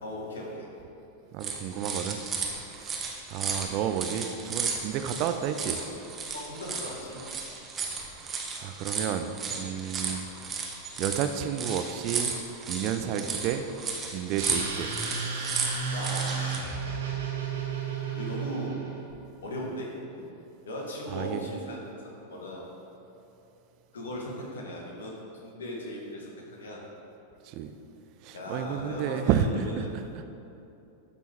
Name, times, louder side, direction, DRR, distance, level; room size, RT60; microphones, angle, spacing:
voice 1, 0.0-0.7 6.3-7.2 15.9-16.6 18.1-18.8 19.4-20.2 20.6-22.6 23.9-26.8 28.3-29.9, left 1 dB, 65° left, -2 dB, 1.5 m, -38 dB
voice 2, 1.3-2.2 2.8-5.8 8.2-10.3 10.6-10.7 11.0-12.4 12.7-13.6 14.0-14.9 21.1-21.5 27.4-27.7 28.2-30.2, right 8 dB, 40° right, 8 dB, 0.4 m, -31 dB
sound 1, 1.4-16.6, right 5 dB, 20° right, 0.9 m, -34 dB
sound 2, 14.4-19.1, right 6 dB, 60° right, 1.2 m, -33 dB
12.0 x 5.3 x 3.0 m, 2.8 s
figure-of-eight pair, 90°, 0 cm